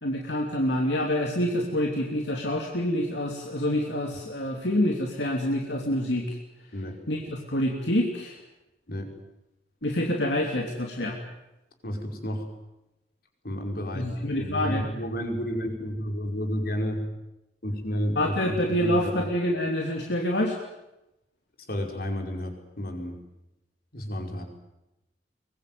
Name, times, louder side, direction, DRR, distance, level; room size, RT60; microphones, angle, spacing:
voice 1, 0.0-6.3 7.1-8.4 9.8-11.2 13.9-14.9 18.2-20.6, left 1 dB, 75° left, 1 dB, 3.0 m, -27 dB
voice 2, 11.8-12.5 13.4-17.1 17.6-19.3 21.7-23.2 23.9-24.4, equal, 60° left, 2 dB, 5.3 m, -31 dB
23.5 x 22.0 x 9.4 m, 0.94 s
head